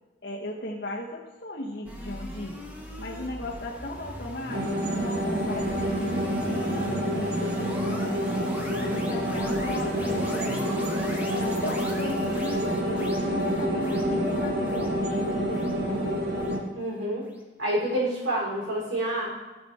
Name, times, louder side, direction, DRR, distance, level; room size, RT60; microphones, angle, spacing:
voice 1, 0.2-2.6 3.0-8.2 8.8-10.7 11.4-16.1, left 1 dB, 55° left, -4 dB, 1.2 m, -37 dB
sound 1, 1.8-17.0, equal, 10° right, 1.3 m, -39 dB
sound 2, 4.5-16.6, equal, 50° right, 1.7 m, -28 dB
voice 2, 16.7-17.2 17.6-19.3, right 1 dB, 70° right, -4 dB, 4.1 m, -28 dB
17.0 x 5.9 x 4.3 m, 1.2 s
head